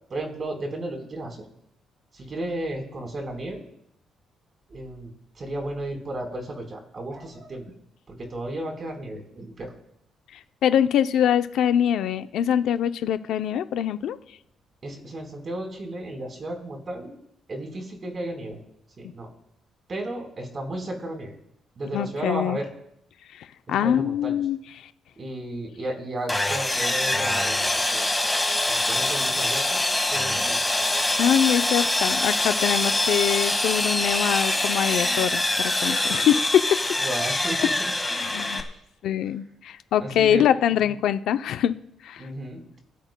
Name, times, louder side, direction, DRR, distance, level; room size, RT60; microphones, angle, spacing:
voice 1, 0.1-1.4 2.1-3.6 4.7-5.1 5.4-7.7 8.1-9.7 14.8-17.1 17.5-18.6 19.0-19.3 19.9-21.3 21.8-22.7 23.8-24.4 25.2-28.1 28.7-29.8 30.1-30.6 37.0-37.9 40.0-40.4 42.2-42.8, right 1 dB, 40° right, 2 dB, 4.0 m, -33 dB
voice 2, 10.3-14.2 21.9-22.6 23.3-24.9 31.2-36.8 38.0-38.6 39.0-41.8 42.0-42.3, left 10 dB, 80° left, 11 dB, 0.5 m, -24 dB
Sawing, 26.3-38.6, left 2 dB, 10° left, 1.7 m, -24 dB
25.5 x 13.0 x 2.2 m, 0.75 s
cardioid pair, 90°, 0 cm